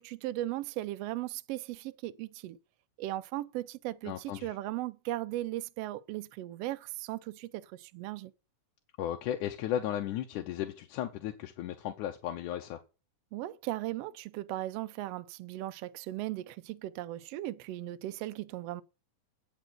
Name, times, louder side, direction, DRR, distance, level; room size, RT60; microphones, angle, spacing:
voice 1, 0.0-2.6 3.0-8.3 13.3-18.8, right 15 dB, 85° right, 1.4 m, -37 dB
voice 2, 4.1-4.5 9.0-12.8, left 11 dB, 85° left, 2.3 m, -35 dB
8.8 x 5.4 x 7.9 m
omnidirectional pair, 3.5 m